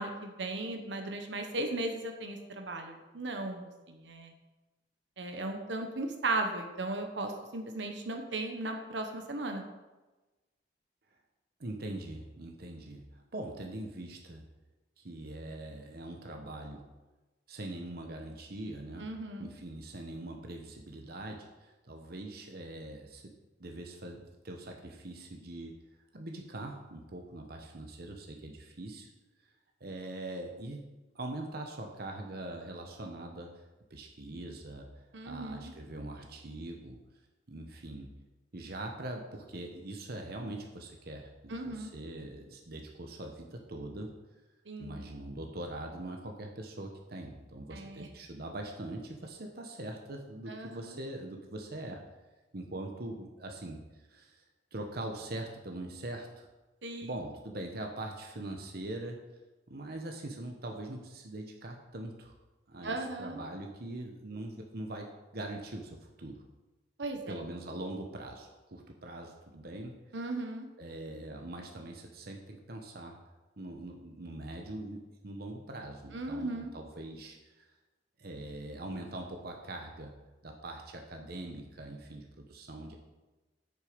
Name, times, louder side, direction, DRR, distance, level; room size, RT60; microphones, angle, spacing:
voice 1, 0.0-4.3 5.2-9.6 19.0-19.5 35.1-35.7 41.5-41.9 44.7-45.1 47.7-48.1 50.5-51.0 56.8-57.2 62.8-63.4 67.0-67.4 70.1-70.7 76.1-76.7, right 2 dB, 85° right, 4 dB, 1.2 m, -36 dB
voice 2, 11.6-14.4 15.0-16.9 17.5-19.1 19.4-23.3 23.6-25.7 26.1-29.1 29.8-33.6 33.9-34.9 35.2-37.0 37.5-38.1 38.5-44.1 44.8-52.0 52.5-53.8 54.1-54.4 54.7-56.5 57.0-59.2 59.7-62.3 62.7-65.1 65.3-66.4 67.3-70.0 70.8-73.2 73.6-77.7 78.2-80.2 80.4-83.0, right 1 dB, 60° right, 2 dB, 1.0 m, -42 dB
8.4 x 6.9 x 5.1 m, 1.1 s
head